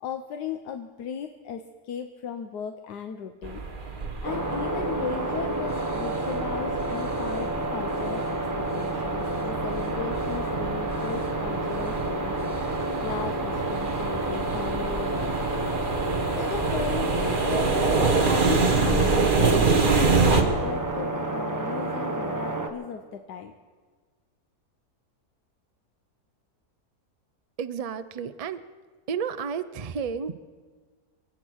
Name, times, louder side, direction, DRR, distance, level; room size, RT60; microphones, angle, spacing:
voice 1, 0.0-3.6 4.2-12.7 13.0-15.5 16.3-23.5, left 7 dB, 85° left, 7 dB, 1.4 m, -36 dB
sound 1, 3.4-20.4, right 4 dB, 35° right, 1.5 m, -27 dB
sound 2, 4.2-22.7, right 2 dB, 15° right, 1.1 m, -30 dB
voice 2, 27.6-28.6 29.1-30.3, right 6 dB, 75° right, 11 dB, 0.3 m, -31 dB
25.5 x 8.8 x 6.3 m, 1.5 s
omnidirectional pair, 1.7 m